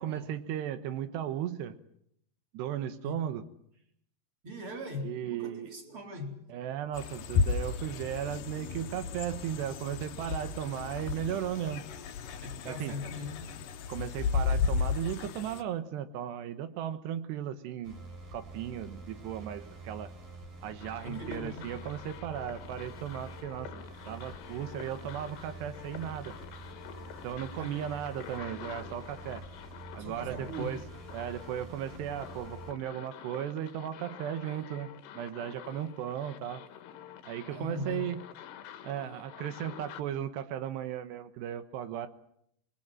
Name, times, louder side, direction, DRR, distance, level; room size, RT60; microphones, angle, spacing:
voice 1, 0.0-1.8 2.5-3.4 5.0-5.7 6.5-11.8 12.7-13.0 13.9-18.0 18.3-20.1 20.6-26.3 27.2-29.4 29.9-30.8 31.1-34.9 35.2-36.6 37.3-38.2 38.8-42.1, right 10 dB, 85° right, 3.3 m, -36 dB
voice 2, 4.4-6.4 12.4-13.5 21.0-21.8 27.6-27.7 30.0-30.8 37.5-38.1, left 2 dB, 30° right, 4.6 m, -40 dB
sound 1, 6.9-15.6, left 5 dB, 70° left, 2.5 m, -33 dB
sound 2, 17.8-32.7, right 2 dB, 65° right, 6.7 m, -47 dB
sound 3, 20.8-40.0, left 10 dB, 85° left, 3.7 m, -48 dB
26.0 x 22.0 x 7.6 m
omnidirectional pair, 4.7 m